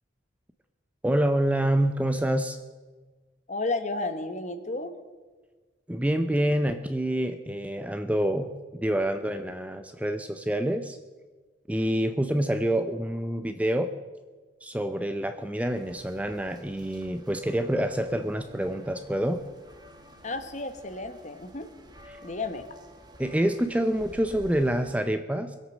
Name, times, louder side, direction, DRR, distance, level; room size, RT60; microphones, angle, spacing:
voice 1, 1.0-2.6 5.9-11.0 11.7-13.9 14.6-19.4 22.1-22.2 23.2-25.6, right 1 dB, 10° right, 8 dB, 0.5 m, -27 dB
voice 2, 3.5-4.9 20.2-21.7 22.2-22.7, left 2 dB, 40° left, 9 dB, 1.2 m, -32 dB
sound 1, 15.7-25.0, equal, 25° right, 1.3 m, -50 dB
22.5 x 8.2 x 6.3 m, 1.3 s
head